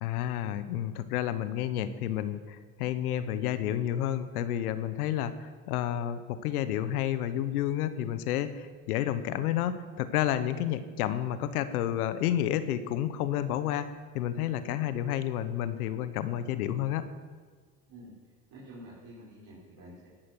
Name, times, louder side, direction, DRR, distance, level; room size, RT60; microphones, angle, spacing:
voice 1, 0.0-13.9 14.1-17.1, left 11 dB, 80° left, 12 dB, 1.1 m, -30 dB
voice 2, 18.5-20.1, equal, 50° right, -7 dB, 5.3 m, -48 dB
17.0 x 11.5 x 6.1 m, 1.5 s
hypercardioid pair, 70°, 44 cm